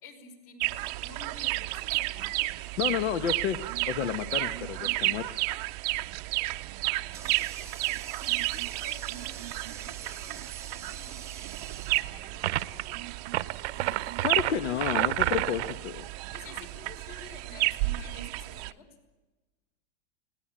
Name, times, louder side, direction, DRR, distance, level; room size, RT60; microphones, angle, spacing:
voice 1, 0.0-2.3 6.5-6.7 7.2-7.9 8.2-9.4 9.8-11.4 12.3-13.0 16.3-18.9, left 4 dB, 50° left, 5 dB, 5.3 m, -51 dB
sound 1, 0.6-18.7, right 20 dB, 35° right, 0.6 m, -32 dB
voice 2, 2.8-3.6 3.9-5.4 14.2-16.0, left 9 dB, 75° left, 10 dB, 1.4 m, -31 dB
Water tap faucet, 6.5-13.0, right 7 dB, 10° right, 1.1 m, -46 dB
sound 2, 12.4-12.8 13.3-15.8, right 15 dB, 65° right, 0.8 m, -29 dB
20.5 x 18.0 x 8.9 m, 1.1 s
supercardioid pair, 165°, 37 cm